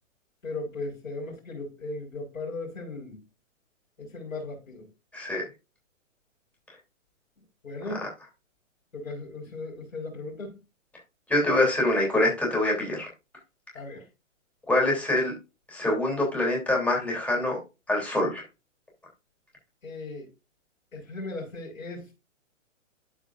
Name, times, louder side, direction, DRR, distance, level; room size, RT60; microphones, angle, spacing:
voice 1, 0.4-3.2 4.0-4.9 7.6-8.1 8.9-10.5 13.7-14.0 19.8-20.3 20.9-22.1, left 2 dB, 85° left, 4.4 m, -37 dB
voice 2, 11.3-13.0 14.7-15.3 15.7-17.6 17.9-18.4, left 1 dB, 5° left, 3.1 m, -25 dB
12.5 x 4.9 x 2.5 m
hypercardioid pair, 135°, 39 cm